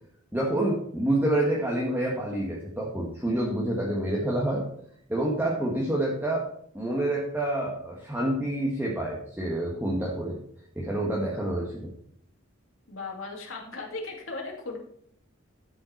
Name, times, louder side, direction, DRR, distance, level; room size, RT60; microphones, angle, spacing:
voice 1, 0.3-4.6 5.1-6.4 6.7-10.4 10.7-11.9, right 1 dB, 10° right, -4 dB, 1.5 m, -27 dB
voice 2, 12.9-14.8, left 3 dB, 70° left, 0 dB, 2.4 m, -37 dB
12.0 x 5.6 x 4.5 m, 0.67 s
head